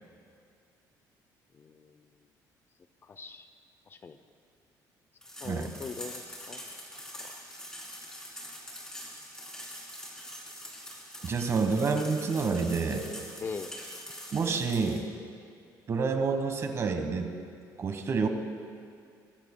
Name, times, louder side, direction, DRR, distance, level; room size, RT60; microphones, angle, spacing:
voice 1, 1.5-2.0 3.0-3.5 3.9-4.2 5.4-6.7 7.2-7.4 13.4-13.7, left 5 dB, 30° left, 10 dB, 0.5 m, -41 dB
sound 1, 5.2-15.0, equal, 10° left, 3.4 m, -44 dB
voice 2, 11.2-13.1 14.3-15.0 15.9-17.3 17.8-18.3, right 4 dB, 40° right, 6 dB, 1.3 m, -28 dB
23.5 x 12.5 x 2.2 m, 2.3 s
cardioid pair, 120°, 7 cm